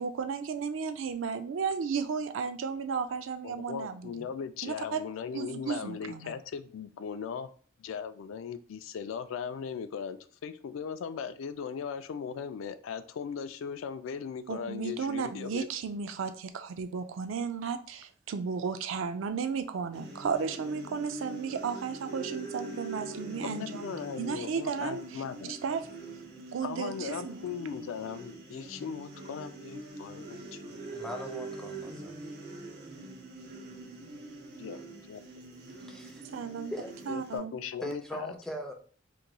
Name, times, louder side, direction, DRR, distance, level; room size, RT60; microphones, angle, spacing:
voice 1, 0.0-4.3 4.6-5.0 5.3-6.3 14.5-25.2 25.5-25.9 26.5-27.4 27.7-27.8 36.2-36.8 37.1-37.5, right 6 dB, 75° right, 0.4 m, -34 dB
voice 2, 3.4-7.5 7.8-15.7 23.4-25.5 26.6-30.8 34.6-34.8 35.1-35.2 37.1-38.3, left 6 dB, 90° left, 0.3 m, -38 dB
sound 1, 19.9-37.4, right 2 dB, 55° right, 0.8 m, -44 dB
voice 3, 30.9-32.2 35.8-36.3 36.7-36.9 37.8-38.7, equal, 5° left, 0.5 m, -40 dB
3.8 x 3.0 x 2.2 m
head